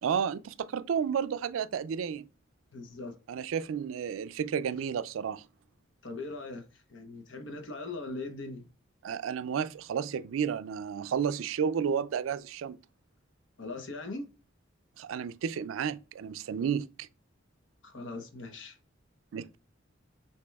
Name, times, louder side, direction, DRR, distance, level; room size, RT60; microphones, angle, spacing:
voice 1, 0.0-2.3 3.3-5.4 9.0-12.8 15.0-17.1 19.3-19.6, right 7 dB, 85° right, 0.3 m, -32 dB
voice 2, 2.7-3.2 6.0-8.7 13.6-14.3 17.8-18.8, left 2 dB, 65° left, 0.8 m, -40 dB
6.0 x 2.9 x 2.3 m
head